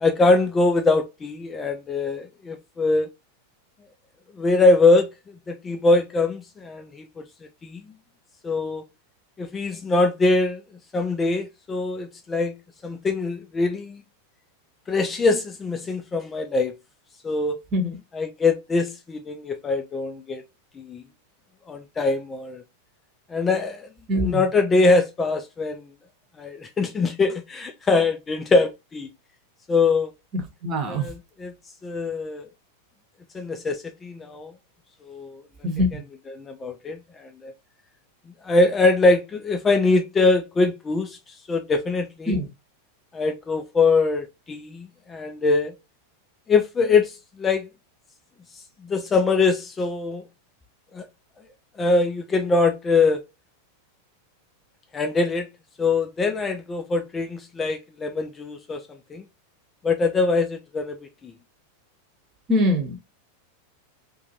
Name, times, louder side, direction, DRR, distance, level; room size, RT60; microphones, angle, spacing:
voice 1, 0.0-3.1 4.4-5.1 5.5-7.2 7.6-7.8 8.4-8.8 9.4-10.6 10.9-12.5 12.8-14.0 14.9-16.7 17.2-17.6 18.1-20.4 20.8-21.1 21.7-22.6 23.3-23.9 24.2-25.9 26.4-29.1 29.7-30.1 30.9-31.5 31.8-32.5 33.3-34.5 35.1-35.4 35.9-36.0 36.3-37.5 38.4-42.4 43.1-45.7 46.5-47.7 48.8-50.2 50.9-51.0 51.8-53.2 54.9-55.5 55.8-58.8 59.1-59.2 59.8-61.0 61.2-61.3, left 3 dB, 20° left, 0.3 m, -23 dB
voice 2, 30.6-31.1 35.6-35.9 42.3-42.4 62.5-63.0, left 1 dB, 30° right, 0.9 m, -22 dB
2.6 x 2.6 x 2.7 m
figure-of-eight pair, 90°, 0 cm